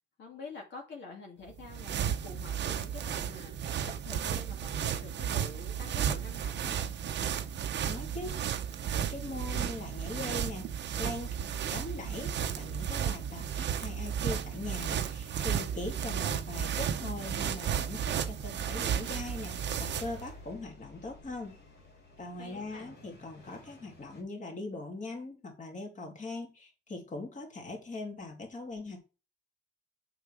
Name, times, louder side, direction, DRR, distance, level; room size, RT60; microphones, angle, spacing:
voice 1, 0.2-3.8 4.0-6.9 22.4-22.9, left 4 dB, 65° left, -1 dB, 2.3 m, -47 dB
sound 1, 1.5-20.2, right 9 dB, 65° right, 0.8 m, -33 dB
voice 2, 7.8-8.4 8.9-10.7 11.0-11.4 11.7-21.6 22.2-29.0, left 2 dB, 40° left, 1 dB, 2.8 m, -41 dB
sound 2, 17.5-24.2, left 2 dB, 80° left, 3.6 m, -53 dB
7.0 x 5.9 x 4.9 m, 0.32 s
cardioid pair, 90°, 20 cm